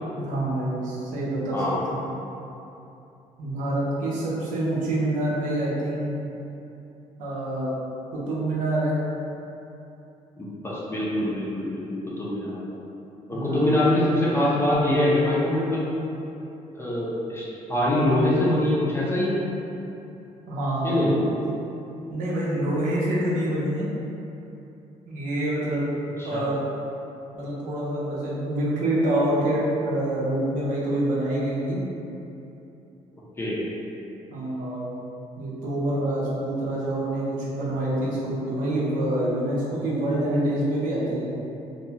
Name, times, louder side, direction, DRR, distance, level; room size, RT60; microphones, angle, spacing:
voice 1, 0.2-2.0 3.4-6.1 7.2-7.7 8.1-9.0 13.3-13.8 20.5-21.3 22.1-23.9 25.1-25.9 26.2-26.6 27.3-31.8 34.3-35.0 35.4-41.3, right 1 dB, 90° right, -7 dB, 0.7 m, -26 dB
voice 2, 10.4-12.6 13.3-15.9 16.7-19.4 20.8-21.1 26.2-26.4 33.4-33.6, left 1 dB, 20° left, -6 dB, 0.5 m, -24 dB
2.6 x 2.2 x 2.8 m, 2.9 s
cardioid pair, 115°, 13 cm